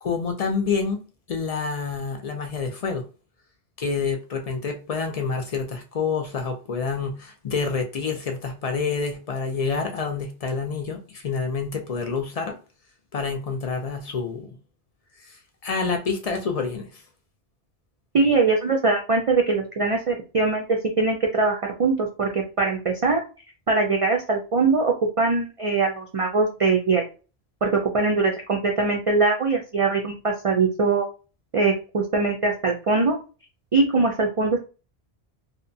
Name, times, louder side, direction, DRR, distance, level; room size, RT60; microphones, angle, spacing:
voice 1, 0.0-3.0 3.8-12.6 13.1-14.5 15.2-17.0, left 5 dB, 55° left, 0.4 m, -28 dB
voice 2, 18.1-23.2 23.7-27.0 27.6-31.1 31.5-33.2 33.7-34.6, right 3 dB, 60° right, 0.3 m, -22 dB
2.7 x 2.1 x 2.6 m
omnidirectional pair, 1.1 m